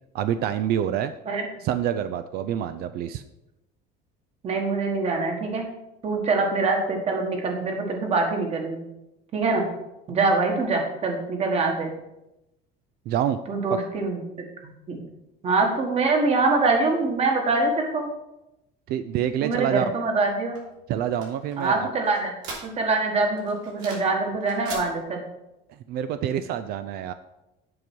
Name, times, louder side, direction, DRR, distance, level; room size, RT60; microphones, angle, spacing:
voice 1, 0.1-1.1 1.6-3.2 13.1-13.4 18.9-19.9 20.9-21.9 25.9-27.1, right 10 dB, 50° right, 11 dB, 0.4 m, -26 dB
voice 2, 4.4-5.6 6.0-8.8 9.3-9.6 10.1-11.9 13.5-14.2 14.9-15.0 15.4-18.1 19.4-20.6 21.6-22.3 22.6-25.2, right 3 dB, 30° right, 3 dB, 1.6 m, -24 dB
sound 1, 20.5-23.0 23.4-24.2 24.4-24.9, right 3 dB, 70° right, 3.2 m, -40 dB
7.8 x 5.3 x 6.1 m, 0.91 s
cardioid pair, 160°, 20 cm